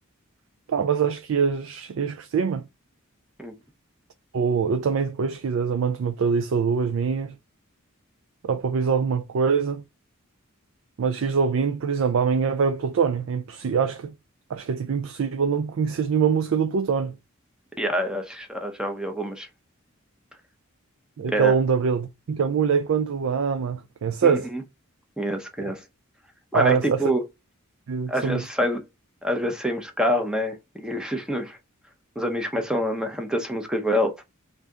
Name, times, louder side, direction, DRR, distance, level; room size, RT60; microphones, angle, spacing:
voice 1, 0.7-2.6 4.3-7.3 8.4-9.8 11.0-14.1 14.5-17.1 21.2-24.5 25.6-25.7 26.5-27.0 27.9-28.4, right 6 dB, 65° right, 0.4 m, -24 dB
voice 2, 17.8-19.5 21.3-21.5 24.2-24.6 25.2-25.8 26.5-27.2 28.1-28.8 29.2-31.6 32.2-34.2, equal, 5° right, 0.6 m, -26 dB
3.4 x 2.6 x 3.6 m
head